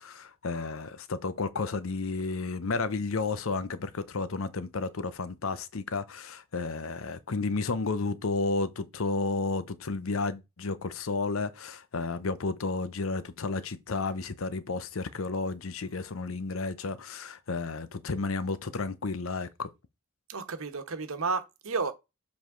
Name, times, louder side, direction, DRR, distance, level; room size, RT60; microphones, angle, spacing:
voice 1, 0.0-19.7, left 3 dB, 75° left, 0.7 m, -32 dB
voice 2, 20.3-21.9, right 4 dB, 85° right, 1.2 m, -32 dB
7.3 x 4.7 x 3.8 m
head